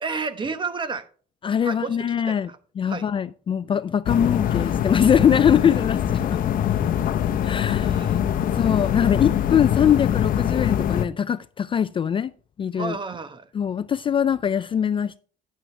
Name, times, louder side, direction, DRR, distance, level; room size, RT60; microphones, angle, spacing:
voice 1, 0.0-1.0 1.6-2.0 2.3-2.6 2.9-3.1 7.8-8.2 12.7-13.5, right 4 dB, 30° right, 1.0 m, -31 dB
voice 2, 1.4-2.5 2.8-6.4 7.4-7.9 8.5-12.3 12.6-13.0 13.5-15.2, left 8 dB, 30° left, 0.3 m, -22 dB
sound 1, 4.1-11.1, left 10 dB, 55° left, 0.7 m, -23 dB
9.4 x 8.9 x 3.3 m
cardioid pair, 110°, 17 cm